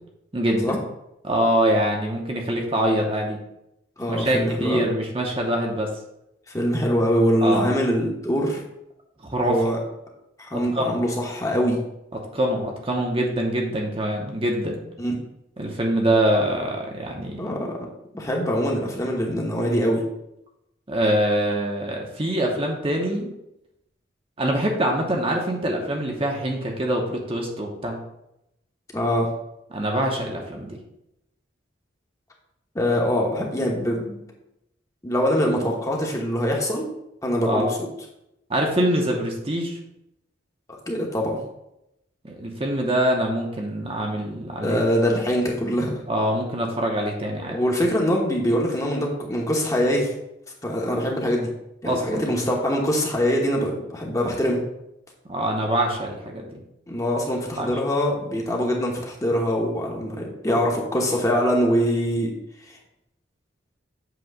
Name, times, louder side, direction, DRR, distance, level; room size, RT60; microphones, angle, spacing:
voice 1, 0.3-0.8 1.2-3.4 4.1-5.9 7.4-7.7 9.2-9.6 10.7-11.0 12.3-14.8 15.6-17.4 20.9-23.3 24.4-28.0 29.7-30.8 37.5-37.7 38.5-39.8 42.2-44.8 46.1-47.6 51.8-52.2 55.3-56.6 57.6-57.7, right 1 dB, 30° right, 1 dB, 0.9 m, -24 dB
voice 2, 4.0-4.9 6.5-8.6 9.4-9.8 10.4-11.8 15.0-15.1 17.4-17.8 18.1-20.0 28.9-29.3 32.7-34.2 35.0-36.8 37.2-37.8 40.9-41.4 44.6-46.0 47.5-50.1 50.6-51.5 51.8-54.6 56.9-62.3, equal, 15° left, -1 dB, 1.0 m, -23 dB
7.9 x 3.0 x 5.9 m, 0.85 s
head